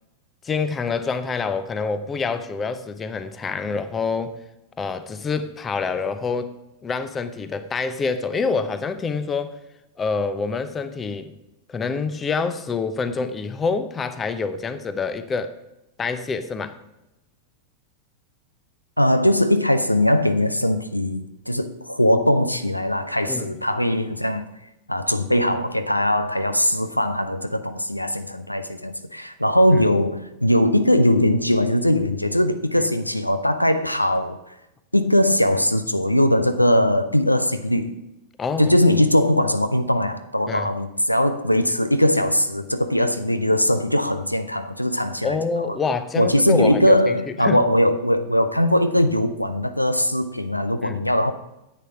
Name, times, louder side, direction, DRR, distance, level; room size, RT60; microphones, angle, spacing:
voice 1, 0.4-4.4 4.8-6.5 6.8-9.6 10.0-11.3 11.7-15.5 16.0-16.8 23.3-23.5 29.7-29.8 32.8-32.9 38.4-38.7 40.5-40.7 45.2-47.6 50.8-51.0, left 4 dB, 20° left, 0.8 m, -26 dB
voice 2, 19.0-24.5 24.9-34.4 34.9-37.9 38.6-45.4 46.2-51.3, left 1 dB, 90° left, 0.6 m, -20 dB
9.9 x 7.9 x 4.9 m
figure-of-eight pair, 90°, 0 cm